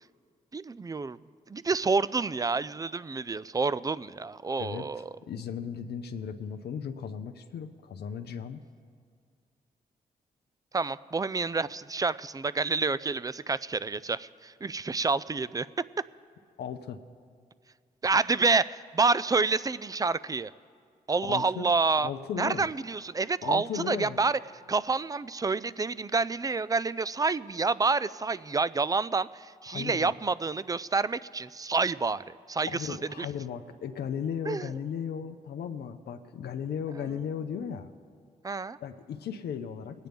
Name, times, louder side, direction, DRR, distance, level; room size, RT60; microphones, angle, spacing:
voice 1, 0.5-1.2 1.5-5.1 10.7-15.7 18.0-20.5 21.1-22.1 22.4-24.4 24.7-33.3 34.5-34.7 38.4-38.8, right 4 dB, 20° right, 18 dB, 0.4 m, -28 dB
voice 2, 4.6-8.6 16.6-17.0 21.2-21.7 22.0-22.7 23.4-24.2 29.7-30.1 32.7-37.9 38.8-40.1, left 7 dB, 70° left, 7 dB, 0.6 m, -36 dB
20.0 x 9.1 x 3.5 m, 2.1 s
supercardioid pair, 45°, 17 cm